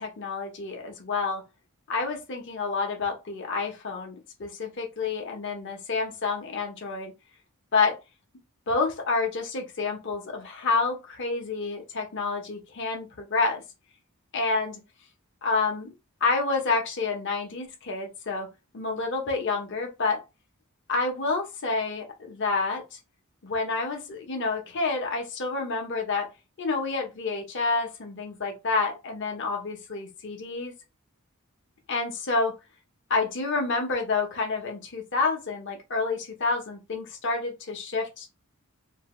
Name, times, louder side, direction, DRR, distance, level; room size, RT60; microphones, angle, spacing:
voice 1, 0.0-1.4 1.9-7.1 7.7-8.0 8.7-13.6 14.3-14.8 15.4-15.9 16.2-18.5 18.7-20.2 20.9-23.0 23.4-26.3 26.6-30.7 31.9-32.6 33.1-38.3, left 4 dB, 55° left, 0.7 m, -28 dB
2.6 x 2.1 x 3.0 m
head